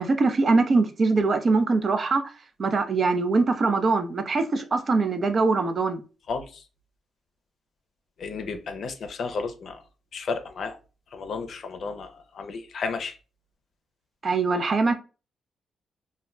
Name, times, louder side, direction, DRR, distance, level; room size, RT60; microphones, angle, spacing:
voice 1, 0.0-2.2 2.6-6.0 14.2-14.9, right 3 dB, 45° right, 0.4 m, -22 dB
voice 2, 8.2-9.8 10.1-10.8 11.1-12.1 12.3-13.1, left 4 dB, 65° left, 0.5 m, -32 dB
2.2 x 2.1 x 3.6 m
cardioid pair, 75°, 0 cm